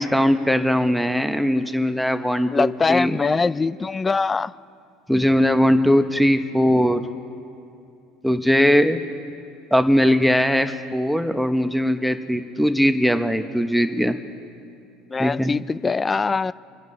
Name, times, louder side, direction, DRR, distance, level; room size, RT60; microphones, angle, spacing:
voice 1, 0.0-3.2 5.1-7.1 8.2-9.0 9.7-14.2 15.2-15.5, equal, ahead, 8 dB, 1.0 m, -20 dB
voice 2, 2.5-4.5 15.1-16.5, left 4 dB, 25° left, 19 dB, 0.3 m, -22 dB
26.0 x 10.5 x 3.2 m, 2.6 s
hypercardioid pair, 75°, 0 cm